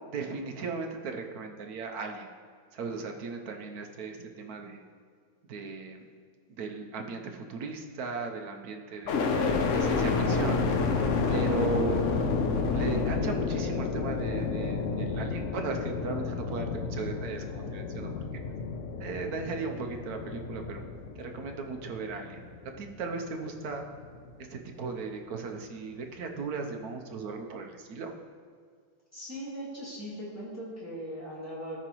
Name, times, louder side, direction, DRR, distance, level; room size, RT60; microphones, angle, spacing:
voice 1, 0.1-2.3 2.7-4.8 5.5-6.0 6.6-9.3 9.7-10.6 11.3-12.0 12.7-18.1 19.0-20.8 21.2-22.4 22.8-23.8 24.4-28.1, right 4 dB, 65° right, 4 dB, 1.0 m, -37 dB
sound 1, 9.1-23.1 23.6-24.3, left 4 dB, 65° left, 0.7 m, -30 dB
voice 2, 29.1-31.8, equal, 10° right, -6 dB, 1.6 m, -39 dB
13.0 x 5.1 x 3.0 m, 2.1 s
omnidirectional pair, 2.1 m